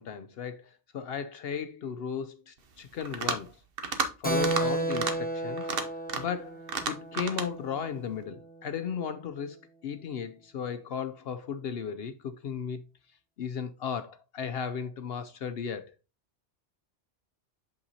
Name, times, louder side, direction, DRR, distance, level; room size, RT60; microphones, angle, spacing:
voice 1, 0.0-3.6 4.2-5.7 6.1-6.6 6.9-9.6 9.8-12.8 13.4-15.9, left 7 dB, 65° left, 0.7 m, -35 dB
sound 1, 3.0-3.5 3.8-4.1 4.4-4.6 4.9-5.1 5.6-6.4 6.7-7.5, right 5 dB, 55° right, 1.0 m, -31 dB
Keyboard (musical), 4.2-8.3, right 2 dB, 10° left, 1.0 m, -33 dB
6.7 x 5.6 x 2.8 m
omnidirectional pair, 1.2 m